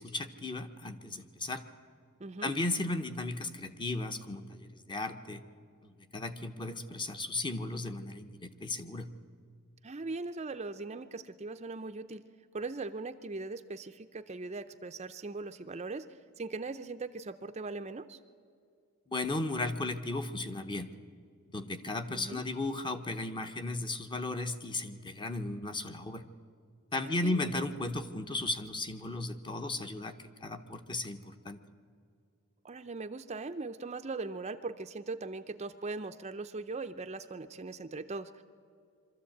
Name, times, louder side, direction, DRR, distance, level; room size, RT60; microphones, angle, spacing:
voice 1, 0.0-1.6 2.4-5.4 5.8-9.1 19.1-20.9 21.5-26.2 26.9-31.6, left 2 dB, 20° left, 8 dB, 0.8 m, -35 dB
voice 2, 2.2-2.5 9.8-12.2 12.5-18.2 22.2-22.4 27.0-27.4 32.6-38.4, right 3 dB, 30° right, 9 dB, 0.5 m, -40 dB
23.5 x 13.5 x 8.5 m, 2.3 s
head